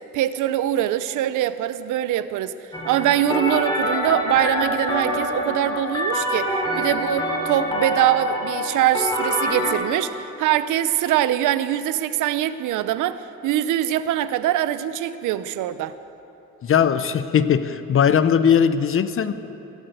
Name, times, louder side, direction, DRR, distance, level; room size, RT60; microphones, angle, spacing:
voice 1, 0.1-2.5 2.9-15.9, right 12 dB, 85° right, 14 dB, 0.6 m, -23 dB
sound 1, 2.7-9.7, left 1 dB, 15° left, 3.1 m, -25 dB
voice 2, 16.6-19.3, left 8 dB, 45° left, 13 dB, 0.7 m, -19 dB
16.5 x 8.2 x 7.9 m, 2.9 s
cardioid pair, 90°, 30 cm